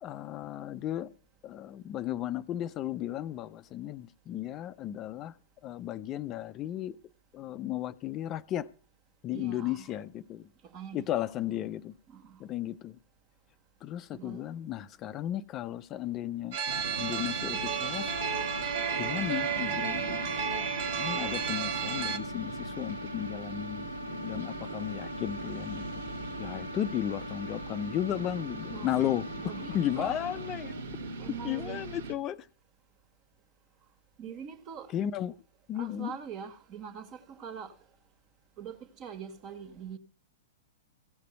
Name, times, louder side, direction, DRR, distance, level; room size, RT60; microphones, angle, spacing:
voice 1, 0.0-1.1 1.4-5.3 5.6-7.0 7.3-8.7 9.2-10.5 10.9-11.9 12.4-13.0 13.8-16.6 17.0-18.2 19.0-20.3 21.0-23.9 24.2-25.8 26.4-29.3 29.7-30.7 31.4-32.5 34.9-35.3 35.7-36.1, left 12 dB, 30° left, 0.6 m, -34 dB
voice 2, 9.3-9.9 10.6-11.1 12.1-12.4 14.1-14.5 28.7-28.9 29.4-30.2 31.2-31.8 34.2-34.9 35.7-37.8 38.6-40.0, right 7 dB, 35° right, 1.8 m, -43 dB
sound 1, 16.5-22.2, right 7 dB, 50° right, 1.9 m, -32 dB
sound 2, 16.7-32.1, right 2 dB, 65° right, 2.1 m, -41 dB
Wind instrument woodwind instrument, 17.9-30.8, left 2 dB, 90° left, 0.8 m, -42 dB
16.0 x 6.8 x 7.6 m
figure-of-eight pair, 105°, 0 cm